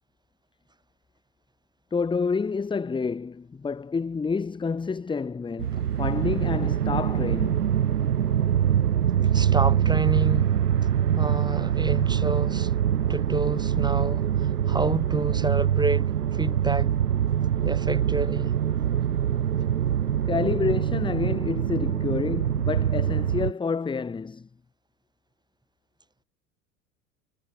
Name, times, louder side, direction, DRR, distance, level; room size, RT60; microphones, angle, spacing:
voice 1, 1.9-7.7 20.3-24.5, left 5 dB, 10° left, 0.9 m, -28 dB
sound 1, 5.6-23.5, right 9 dB, 85° right, 0.6 m, -24 dB
voice 2, 9.3-10.6 11.2-12.7 13.1-16.9 17.6-18.5, right 2 dB, 10° right, 3.6 m, -29 dB
figure-of-eight pair, 75°, 45 cm